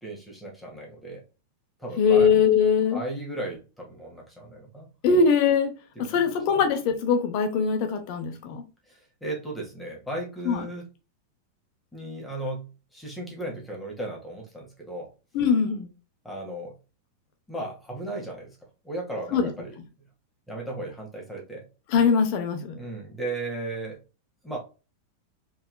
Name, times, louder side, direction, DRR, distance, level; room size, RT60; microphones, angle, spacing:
voice 1, 0.0-1.2 1.8-2.3 2.9-4.9 6.0-6.3 8.9-10.9 11.9-15.1 16.2-16.8 17.5-18.6 18.8-19.8 20.5-21.7 22.8-24.0 24.4-24.6, right 2 dB, 5° left, 1.7 m, -36 dB
voice 2, 2.0-3.0 5.0-5.7 6.1-8.6 10.4-10.6 15.3-15.9 19.3-19.5 21.9-22.7, left 6 dB, 45° left, 1.0 m, -21 dB
4.4 x 3.5 x 2.3 m
figure-of-eight pair, 90°, 0 cm